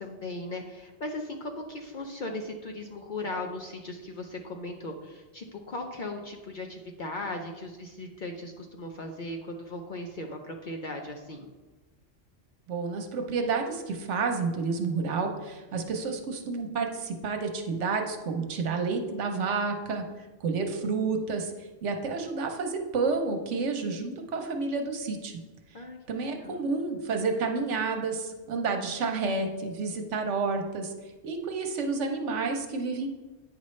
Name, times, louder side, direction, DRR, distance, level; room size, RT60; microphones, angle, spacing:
voice 1, 0.0-11.5 25.7-26.6, left 2 dB, 50° left, 3 dB, 0.6 m, -38 dB
voice 2, 12.7-25.4 26.1-30.9 31.2-33.1, right 4 dB, 70° right, 4 dB, 1.1 m, -30 dB
9.0 x 5.3 x 3.2 m, 1.2 s
omnidirectional pair, 1.3 m